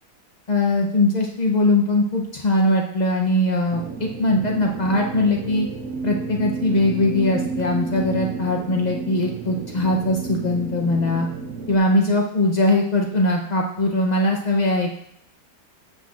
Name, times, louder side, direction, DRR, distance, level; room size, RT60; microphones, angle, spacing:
voice 1, 0.5-5.7 6.0-11.3 11.7-14.9, left 2 dB, 55° left, 1 dB, 0.4 m, -21 dB
sound 1, 3.7-11.8, right 4 dB, 65° right, 1.3 m, -31 dB
13.5 x 7.8 x 2.4 m, 0.72 s
omnidirectional pair, 1.8 m